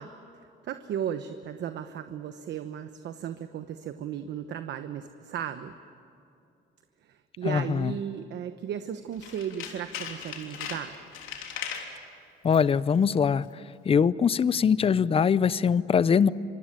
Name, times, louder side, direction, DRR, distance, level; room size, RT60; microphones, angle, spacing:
voice 1, 0.0-5.7 7.0-11.0, right 9 dB, 65° right, 9 dB, 1.1 m, -35 dB
voice 2, 7.4-7.9 12.4-13.4 13.9-16.3, left 6 dB, 30° left, 18 dB, 0.6 m, -22 dB
Tools, 9.1-11.9 12.4-12.8 13.0-13.1, left 7 dB, 85° left, 3.5 m, -38 dB
25.0 x 24.5 x 9.2 m, 2.6 s
cardioid pair, 120°, 20 cm